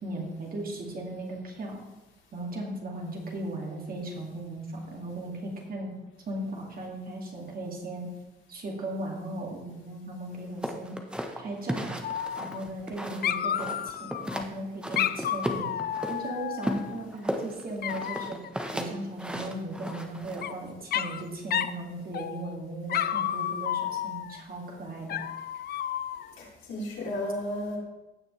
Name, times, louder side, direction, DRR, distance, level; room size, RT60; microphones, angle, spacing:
voice 1, 0.0-1.8 2.3-5.9 6.3-8.1 8.5-11.0 11.4-12.0 12.4-15.7 16.1-18.4 18.7-25.2, right 1 dB, 45° right, -1 dB, 2.4 m, -37 dB
sound 1, 10.6-13.3 13.6-14.5 14.8-16.2 16.6-20.4, equal, 5° right, 1.1 m, -34 dB
Dog, 12.0-12.9 13.2-14.4 15.0-17.0 17.8-18.5 19.9-20.5 20.9-21.2 21.5-21.8 22.1-22.6 22.9-24.4 25.1-26.3, left 10 dB, 55° left, 0.4 m, -31 dB
voice 2, 26.4-27.8, left 1 dB, 75° left, -3 dB, 3.3 m, -33 dB
16.0 x 6.1 x 3.3 m, 1.1 s
cardioid pair, 90°, 20 cm